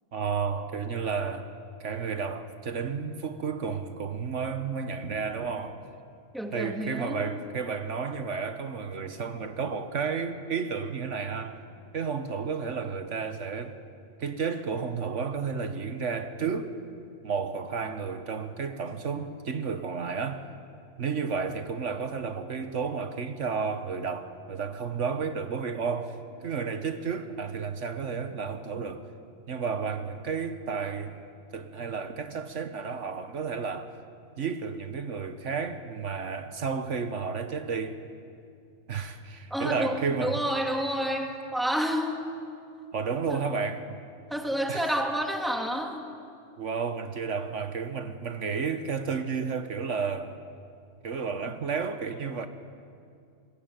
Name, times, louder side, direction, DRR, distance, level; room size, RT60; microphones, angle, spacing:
voice 1, 0.1-1.5 1.8-5.8 6.5-11.6 11.9-13.8 14.2-16.7 17.2-20.5 21.0-29.1 29.5-31.3 31.5-33.9 34.4-38.0 38.9-40.4 42.9-44.0 44.7-44.9 46.6-50.4 51.0-52.5, right 5 dB, 75° right, 1.5 m, -32 dB
voice 2, 6.3-7.3 39.5-42.2 43.3-43.5 44.3-46.1, equal, ahead, 2.4 m, -29 dB
25.5 x 22.0 x 9.1 m
omnidirectional pair, 1.3 m